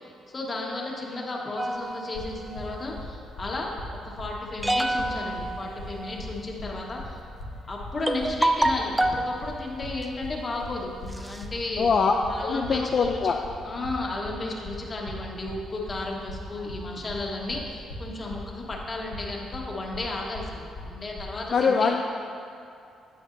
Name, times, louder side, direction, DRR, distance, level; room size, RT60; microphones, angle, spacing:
voice 1, 0.0-3.7 4.0-7.2 7.7-11.9 12.3-13.2 13.6-22.0, left 2 dB, 30° left, -2 dB, 1.3 m, -34 dB
sound 1, 1.6-2.9 4.6-6.4 7.4-7.5 8.1-9.3 10.0-10.3 10.8-10.9 11.1-11.8, right 1 dB, 10° right, 0.4 m, -28 dB
sound 2, 2.1-21.3, left 1 dB, 90° left, 1.3 m, -40 dB
voice 2, 11.8-12.1 12.5-13.4 21.5-22.0, left 5 dB, 50° left, 2 dB, 0.4 m, -22 dB
9.5 x 8.6 x 2.6 m, 2.5 s
cardioid pair, 90°, 0 cm